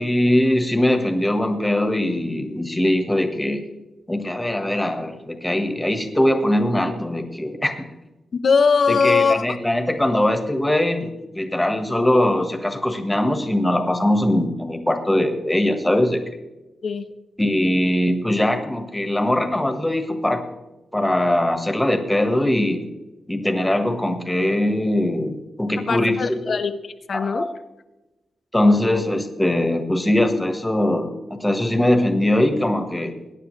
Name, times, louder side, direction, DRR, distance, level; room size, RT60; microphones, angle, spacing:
voice 1, 0.0-3.6 4.1-7.9 8.9-16.2 17.4-20.4 20.9-22.8 23.3-26.5 27.1-27.5 28.5-33.2, left 1 dB, 10° left, 6 dB, 1.5 m, -21 dB
voice 2, 8.3-9.5 16.8-17.1 25.9-27.5 28.6-28.9, left 5 dB, 55° left, 8 dB, 0.7 m, -21 dB
21.5 x 9.8 x 3.2 m, 1.0 s
wide cardioid pair, 125°, 0 cm